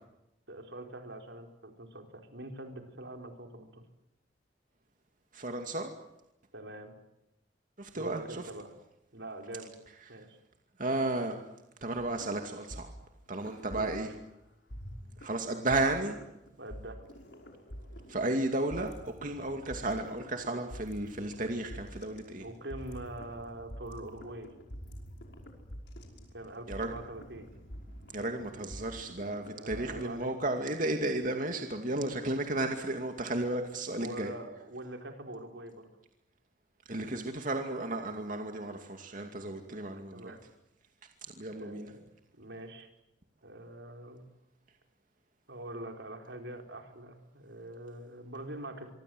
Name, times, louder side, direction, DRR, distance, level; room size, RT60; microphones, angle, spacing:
voice 1, 0.5-3.8 6.5-6.9 7.9-8.7 9.1-9.7 10.1-10.4 13.7-14.0 16.6-17.0 22.4-24.5 26.3-27.5 29.5-30.3 34.0-35.9 39.6-40.4 41.5-42.0 42.4-42.9 43.4-44.2 45.5-48.9, right 1 dB, 80° right, 4 dB, 4.6 m, -44 dB
voice 2, 5.3-5.9 7.8-8.4 10.1-10.2 10.8-11.4 11.8-12.9 13.3-14.1 15.2-16.1 18.1-22.4 26.7-26.9 28.1-34.3 36.9-40.3 41.4-41.9, right 2 dB, 50° right, 4 dB, 2.5 m, -33 dB
sound 1, 12.0-14.3 14.7-30.3, equal, 80° left, 5.5 m, -47 dB
25.5 x 24.0 x 7.9 m, 0.89 s
head